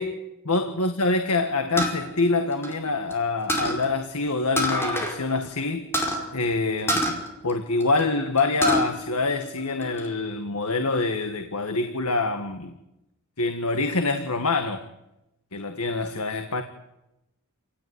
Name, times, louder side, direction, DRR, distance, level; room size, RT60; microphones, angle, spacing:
voice 1, 0.5-5.9 6.3-12.7 13.4-14.8 15.5-16.6, left 3 dB, 85° left, 7 dB, 1.8 m, -25 dB
sound 1, 1.8-3.1 3.5-3.8 4.6-5.2 5.4-5.5 5.9-6.2 6.9-8.0 8.4-8.9 9.3-10.1, equal, 10° left, 4.8 m, -26 dB
28.0 x 18.0 x 9.6 m, 0.91 s
head